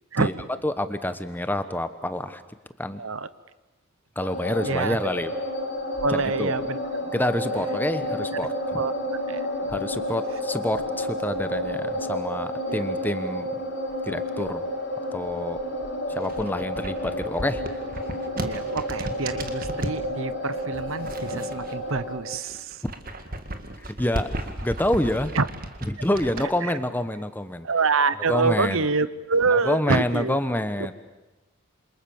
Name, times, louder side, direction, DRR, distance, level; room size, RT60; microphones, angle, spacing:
voice 1, 0.6-2.4 2.8-3.0 4.2-5.3 6.1-6.5 7.1-8.8 9.7-13.5 14.0-14.7 15.1-15.6 16.1-17.6 23.8-25.3 25.9-27.7 28.3-28.8 29.5-30.9, left 1 dB, 10° left, 11 dB, 1.1 m, -27 dB
voice 2, 3.0-3.3 4.6-5.0 6.0-7.0 8.7-8.9 9.3-9.5 12.7-12.8 18.4-22.8 25.3-25.5 26.6-26.7 27.6-30.4 30.8-30.9, right 4 dB, 65° right, 15 dB, 1.0 m, -26 dB
sound 1, 4.2-22.2, left 1 dB, 50° left, 4.7 m, -30 dB
sound 2, 16.2-20.0 20.7-22.0 22.3-26.4, right 1 dB, 40° right, 2.0 m, -35 dB
27.5 x 27.0 x 7.2 m, 1.1 s
head